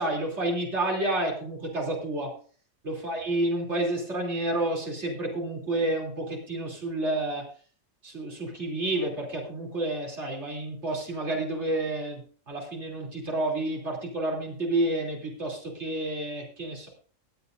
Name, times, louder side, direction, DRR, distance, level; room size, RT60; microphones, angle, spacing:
voice 1, 0.0-2.3 2.8-7.5 8.0-16.9, right 1 dB, 55° right, -1 dB, 3.6 m, -30 dB
23.0 x 8.2 x 2.6 m, 0.41 s
omnidirectional pair, 1.4 m